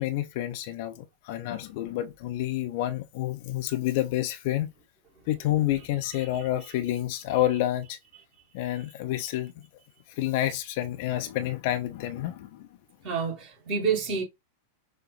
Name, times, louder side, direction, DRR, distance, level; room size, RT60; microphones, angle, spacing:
voice 1, 0.0-4.7 5.3-8.0 8.5-9.5 10.2-12.7, left 13 dB, 50° left, 0.7 m, -29 dB
voice 2, 13.0-14.2, right 6 dB, 40° right, 2.7 m, -28 dB
6.4 x 2.2 x 3.2 m
figure-of-eight pair, 90°, 0 cm